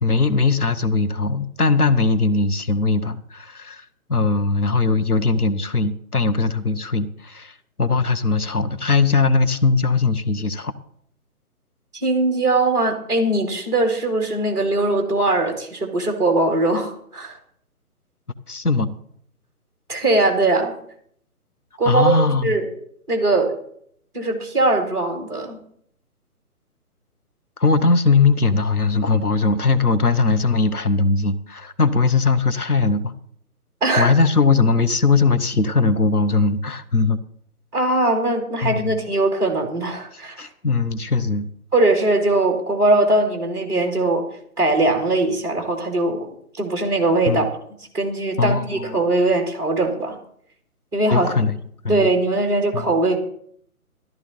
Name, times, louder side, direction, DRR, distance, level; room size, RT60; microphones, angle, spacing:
voice 1, 0.0-10.7 18.5-19.0 21.9-22.6 27.6-33.1 34.0-37.2 38.6-39.0 40.1-41.5 47.3-47.5 48.4-48.9 51.1-51.6 51.8-52.1 52.7-52.9, left 4 dB, 90° left, 10 dB, 1.1 m, -20 dB
voice 2, 11.9-17.4 19.9-20.8 21.8-22.7 23.1-23.5 24.1-25.6 33.8-34.1 37.7-40.4 41.7-44.2 44.6-47.5 47.9-50.2 50.9-51.3 51.9-53.2, right 2 dB, 10° right, 2 dB, 1.8 m, -20 dB
14.0 x 12.5 x 4.0 m, 0.67 s
figure-of-eight pair, 140°, 44 cm